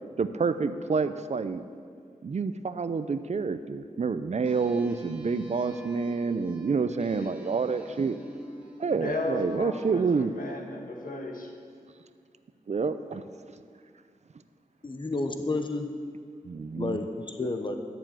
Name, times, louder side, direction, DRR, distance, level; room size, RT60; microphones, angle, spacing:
voice 1, 0.2-1.6 2.2-8.2 8.8-10.3 12.7-13.2 16.4-17.0, right 4 dB, 55° right, 11 dB, 0.6 m, -28 dB
sound 1, 4.5-9.6, equal, 10° right, 2.7 m, -49 dB
voice 2, 7.0-7.3 9.0-11.5, left 2 dB, 75° left, 1 dB, 1.9 m, -35 dB
voice 3, 14.8-15.9 16.7-17.8, left 2 dB, 35° left, 6 dB, 1.1 m, -31 dB
11.5 x 7.4 x 7.7 m, 2.2 s
wide cardioid pair, 65°, 14 cm